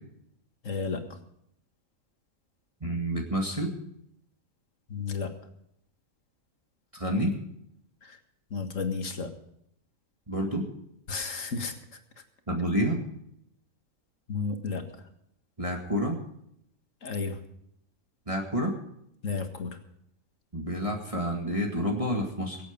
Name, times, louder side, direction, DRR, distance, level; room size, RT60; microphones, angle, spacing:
voice 1, 0.6-1.0 4.9-5.3 8.0-8.2 8.5-9.3 11.1-11.7 14.3-14.8 17.0-17.4 19.2-19.8, left 4 dB, 65° left, 6 dB, 2.1 m, -32 dB
voice 2, 2.8-3.7 6.9-7.3 10.3-10.6 12.5-13.0 15.6-16.2 18.3-18.7 20.5-22.6, equal, 25° right, 0 dB, 2.1 m, -28 dB
24.0 x 8.4 x 5.2 m, 0.73 s
omnidirectional pair, 1.4 m